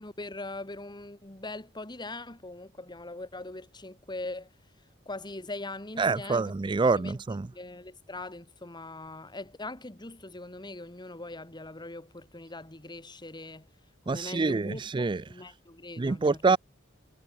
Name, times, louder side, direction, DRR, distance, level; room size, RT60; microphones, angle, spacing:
voice 1, 0.0-4.5 5.1-6.5 7.0-7.2 7.5-13.7 14.1-16.4, left 2 dB, 20° left, 2.2 m, -41 dB
voice 2, 6.0-7.5 14.1-15.2 16.0-16.6, right 4 dB, 25° right, 0.4 m, -26 dB
head